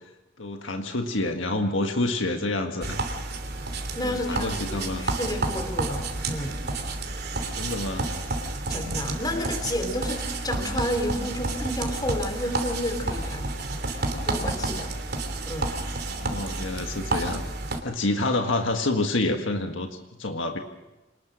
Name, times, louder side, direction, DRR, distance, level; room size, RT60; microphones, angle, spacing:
voice 1, 0.4-3.0 4.0-5.0 7.4-8.1 16.1-17.4 17.8-19.9 20.2-20.6, left 2 dB, 70° left, 4 dB, 1.7 m, -28 dB
sound 1, 2.8-17.8, right 2 dB, 50° right, 3.1 m, -30 dB
voice 2, 3.9-6.6 8.7-13.5 13.9-15.0 15.5-15.8 16.4-16.6, left 1 dB, 20° left, 6 dB, 3.2 m, -31 dB
26.0 x 20.0 x 6.3 m, 1.0 s
head